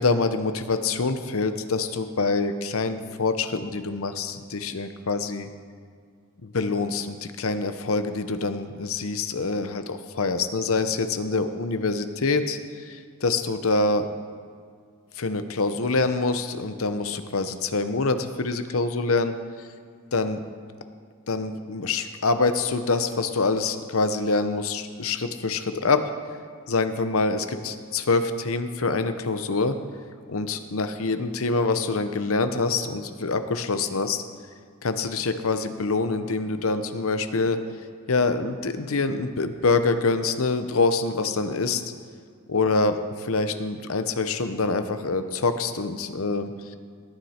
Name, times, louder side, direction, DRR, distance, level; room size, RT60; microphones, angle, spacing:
voice 1, 0.0-5.5 6.4-14.1 15.2-19.3 20.1-20.4 21.3-26.1 26.7-29.8 30.3-34.2 34.8-37.6 38.1-41.8 42.5-46.8, left 3 dB, 65° left, 9 dB, 0.8 m, -25 dB
19.0 x 9.5 x 4.4 m, 2.1 s
head